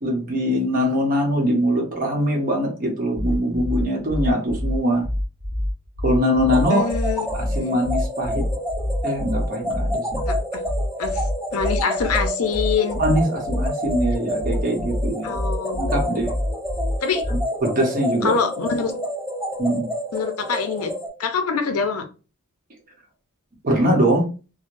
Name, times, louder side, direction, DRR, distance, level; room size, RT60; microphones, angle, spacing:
voice 1, 0.0-5.0 6.0-6.9 7.3-8.4 9.0-10.2 13.0-15.3 15.7-16.4 17.3-18.4 19.6-19.9 23.6-24.3, equal, 40° right, 1 dB, 0.8 m, -22 dB
sound 1, 3.1-17.6, left 1 dB, 90° right, 0.9 m, -26 dB
sound 2, 6.5-21.1, equal, 5° right, 1.5 m, -29 dB
voice 2, 6.7-7.8 10.3-10.6 11.0-11.2 11.5-13.0 15.2-16.1 17.0-17.2 18.2-19.0 20.1-20.9 21.2-22.0, left 5 dB, 70° left, 7 dB, 0.5 m, -25 dB
3.1 x 2.0 x 2.5 m, 0.33 s
head